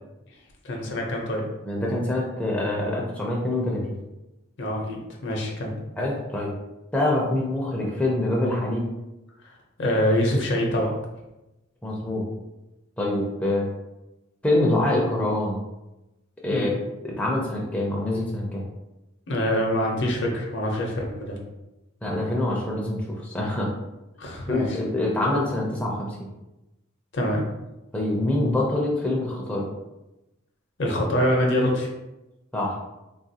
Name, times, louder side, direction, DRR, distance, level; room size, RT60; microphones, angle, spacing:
voice 1, 0.6-1.4 4.6-5.7 9.8-10.9 16.5-16.7 19.3-21.4 24.2-24.8 27.1-27.4 30.8-31.9, equal, 60° left, 0 dB, 0.6 m, -25 dB
voice 2, 1.6-3.8 6.0-6.5 6.9-8.8 11.8-12.2 13.0-13.7 14.4-15.6 16.4-16.8 17.0-18.6 22.0-23.7 24.5-26.2 27.9-29.7 32.5-32.8, left 1 dB, 5° left, -4 dB, 0.4 m, -25 dB
3.4 x 2.4 x 2.7 m, 0.97 s
head